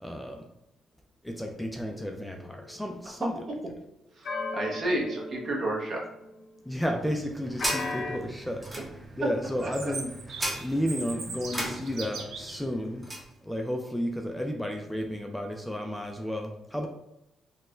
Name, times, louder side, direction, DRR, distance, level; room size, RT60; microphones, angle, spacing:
voice 1, 0.0-0.4 1.2-3.3 6.7-8.6 9.2-10.1 10.6-13.1 13.5-16.9, equal, ahead, 2 dB, 0.4 m, -32 dB
sound 1, 1.9-3.4 4.2-6.7 7.6-8.2, left 3 dB, 60° left, 0.5 m, -38 dB
voice 2, 4.5-6.0 9.6-9.9, right 1 dB, 50° right, -1 dB, 0.9 m, -30 dB
sound 2, 6.7-13.3, right 1 dB, 15° right, 0.8 m, -38 dB
Chirp tweet, 9.6-12.6, right 4 dB, 80° right, 0.6 m, -39 dB
4.1 x 2.2 x 2.5 m, 0.84 s
cardioid pair, 90°, 0 cm